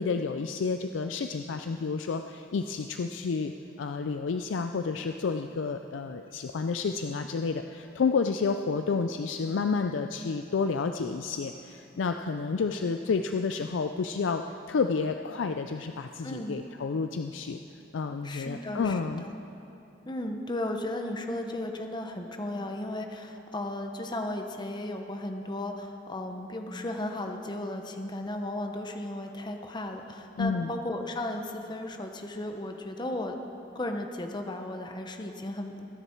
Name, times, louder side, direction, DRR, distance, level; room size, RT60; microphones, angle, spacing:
voice 1, 0.0-3.5 3.8-17.6 17.9-19.2 30.4-30.7, left 4 dB, 85° left, 7 dB, 0.4 m, -30 dB
voice 2, 16.2-16.6 18.2-19.4 20.1-33.4 33.7-35.8, left 1 dB, 25° left, 4 dB, 0.9 m, -35 dB
20.5 x 9.9 x 4.5 m, 3.0 s
head